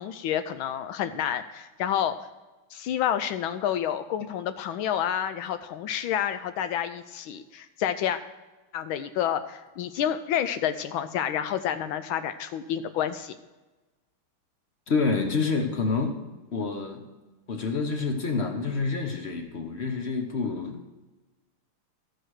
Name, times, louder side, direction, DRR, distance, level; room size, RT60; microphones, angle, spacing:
voice 1, 0.0-2.1 2.7-8.2 8.7-13.3, left 10 dB, 75° left, 11 dB, 1.3 m, -29 dB
voice 2, 14.9-16.2 16.5-17.0 17.5-20.9, left 4 dB, 50° left, 5 dB, 0.8 m, -28 dB
13.5 x 4.6 x 6.2 m, 1.2 s
omnidirectional pair, 2.4 m